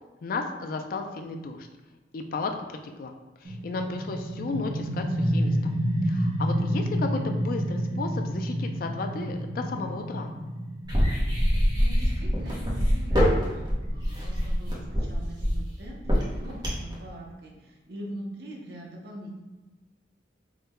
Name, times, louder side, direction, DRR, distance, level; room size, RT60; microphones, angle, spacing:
voice 1, 0.2-1.7 2.1-3.1 3.4-5.7 6.0-10.3, left 3 dB, 50° left, 4 dB, 0.3 m, -34 dB
sound 1, 3.4-14.9, equal, 80° right, 1.1 m, -30 dB
sound 2, 10.8-16.9, equal, 25° right, 0.8 m, -24 dB
voice 2, 11.3-19.4, right 1 dB, 60° right, -1 dB, 0.7 m, -42 dB
3.6 x 2.2 x 4.1 m, 1.2 s
head